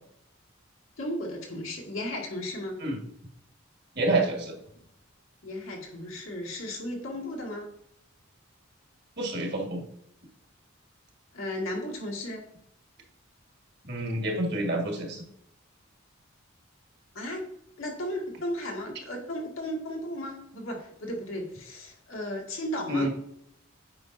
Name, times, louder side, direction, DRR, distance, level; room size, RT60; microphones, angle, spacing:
voice 1, 1.0-2.8 5.4-7.7 11.3-12.4 17.1-17.5 17.8-23.1, left 1 dB, 75° left, -1 dB, 2.1 m, -35 dB
voice 2, 3.9-4.5 9.2-9.8 13.8-15.2 22.9-23.1, right 1 dB, 50° right, 2 dB, 1.6 m, -28 dB
8.4 x 5.5 x 2.6 m, 0.73 s
head